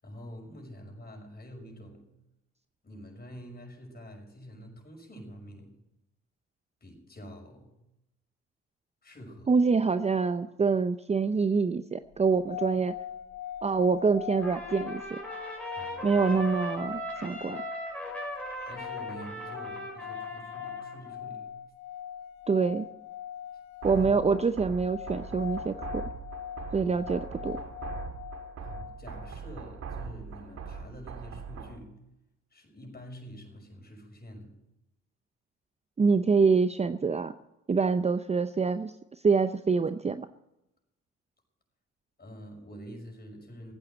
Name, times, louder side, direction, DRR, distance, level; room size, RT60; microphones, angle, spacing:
voice 1, 0.0-2.1 2.8-5.8 6.8-7.8 9.0-9.5 15.7-16.2 18.7-21.6 23.9-24.1 26.8-27.0 28.6-32.0 32.5-34.6 42.2-43.7, equal, 30° left, 2 dB, 6.1 m, -47 dB
voice 2, 9.5-13.0 13.6-15.2 16.0-17.6 22.5-22.9 23.8-26.0 26.7-27.6 36.0-37.3 37.7-38.9 39.2-40.3, right 5 dB, 20° right, 11 dB, 0.6 m, -26 dB
sound 1, 12.2-29.4, left 10 dB, 70° left, 1.1 m, -41 dB
Trumpet, 14.4-21.1, right 1 dB, 5° left, 4.9 m, -39 dB
sound 2, 23.8-31.8, right 5 dB, 60° right, 2.0 m, -41 dB
15.5 x 9.2 x 7.9 m, 0.87 s
supercardioid pair, 60°, 29 cm